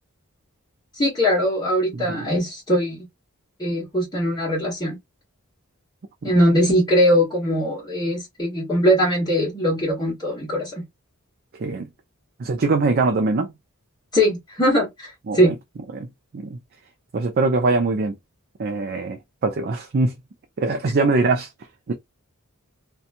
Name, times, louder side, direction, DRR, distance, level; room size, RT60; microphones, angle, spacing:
voice 1, 0.9-3.0 3.6-5.0 6.2-10.8 14.1-15.5, equal, 20° left, 1.2 m, -21 dB
voice 2, 1.9-2.3 11.5-11.9 12.4-13.5 15.3-15.5 15.9-16.1 16.3-16.6 17.1-18.2 18.6-20.1 20.6-21.5 21.9-22.0, right 3 dB, 45° right, 0.4 m, -22 dB
2.7 x 2.3 x 2.5 m
head